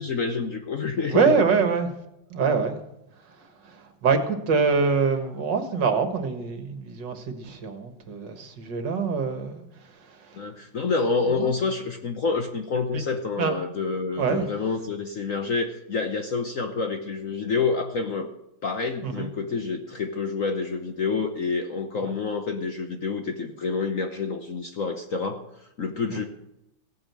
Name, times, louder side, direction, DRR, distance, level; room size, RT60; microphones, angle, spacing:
voice 1, 0.0-1.4 2.4-2.5 10.3-18.3 18.6-26.2, left 4 dB, 50° left, 6 dB, 1.1 m, -28 dB
voice 2, 1.1-1.9 2.3-2.8 3.4-9.6 10.0-10.4 11.4-11.5 12.9-13.0 13.4-13.5 14.2-14.5 19.0-19.3 22.0-22.1 26.1-26.3, right 5 dB, 60° right, 8 dB, 2.1 m, -25 dB
16.0 x 8.7 x 7.5 m, 0.84 s
omnidirectional pair, 2.3 m